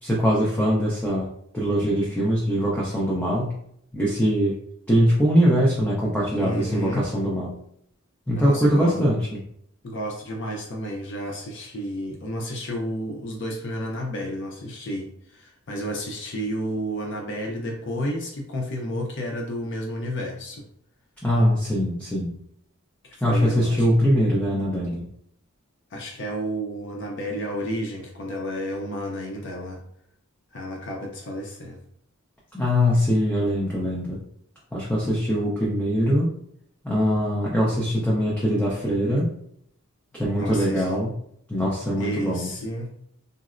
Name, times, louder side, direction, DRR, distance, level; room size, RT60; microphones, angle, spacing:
voice 1, 0.0-1.3 1.5-3.5 3.9-4.6 4.9-7.5 8.3-9.4 21.2-22.3 23.2-25.0 32.5-34.2 34.7-36.3 36.8-39.3 40.1-41.1 41.5-42.5, equal, 5° left, -6 dB, 0.5 m, -22 dB
voice 2, 6.4-7.0 8.4-9.0 9.8-20.6 23.0-23.9 25.9-29.8 30.5-31.8 40.4-40.9 42.0-42.9, equal, 55° left, 0 dB, 0.5 m, -31 dB
3.9 x 2.0 x 2.4 m, 0.70 s
head